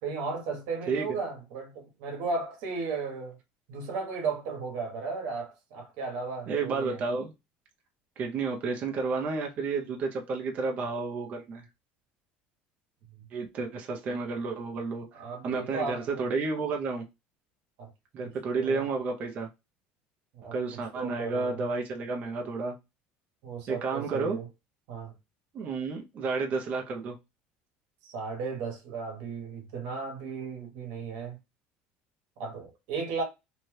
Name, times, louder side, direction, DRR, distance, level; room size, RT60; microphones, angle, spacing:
voice 1, 0.0-3.3 3.7-7.0 15.1-16.3 17.8-17.9 18.2-18.3 18.6-18.8 20.3-20.5 20.9-21.6 23.4-24.5 24.9-25.1 28.0-31.4 32.4-33.2, right 4 dB, 75° right, 1.0 m, -35 dB
voice 2, 6.5-7.3 8.2-11.6 13.3-15.1 15.4-17.0 18.1-19.5 20.5-22.7 23.7-24.4 25.5-27.1, right 4 dB, 35° right, 0.5 m, -31 dB
2.7 x 2.2 x 3.1 m
cardioid pair, 145°, 4 cm